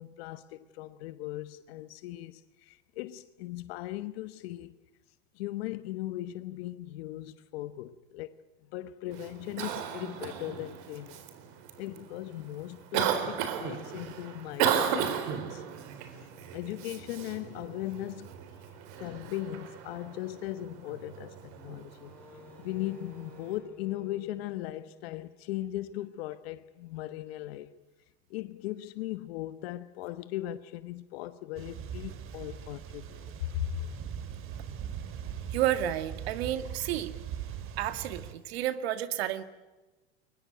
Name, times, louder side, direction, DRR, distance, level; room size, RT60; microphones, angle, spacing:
voice 1, 0.0-4.7 5.4-8.3 8.7-11.2 11.8-15.6 16.1-16.2 16.5-18.3 19.0-22.1 22.6-27.7 28.3-33.9, left 15 dB, 70° left, 1.2 m, -38 dB
Cough, 9.1-23.6, right 8 dB, 60° right, 3.9 m, -36 dB
Wind instrument woodwind instrument, 21.5-25.8, right 2 dB, 5° left, 4.1 m, -55 dB
sound 1, 31.5-38.3, right 8 dB, 40° right, 2.7 m, -40 dB
voice 2, 35.5-37.1 37.8-39.4, right 12 dB, 75° right, 2.1 m, -31 dB
23.0 x 21.0 x 9.0 m
supercardioid pair, 120°, 32 cm